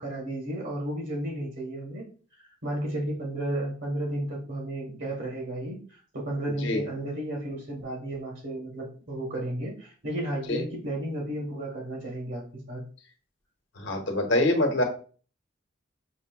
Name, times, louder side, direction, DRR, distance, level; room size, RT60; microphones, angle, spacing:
voice 1, 0.0-2.0 2.6-12.8, right 1 dB, 65° right, -2 dB, 1.1 m, -33 dB
voice 2, 13.8-14.8, left 1 dB, 85° left, 4 dB, 0.9 m, -25 dB
6.2 x 2.8 x 2.2 m, 0.40 s
head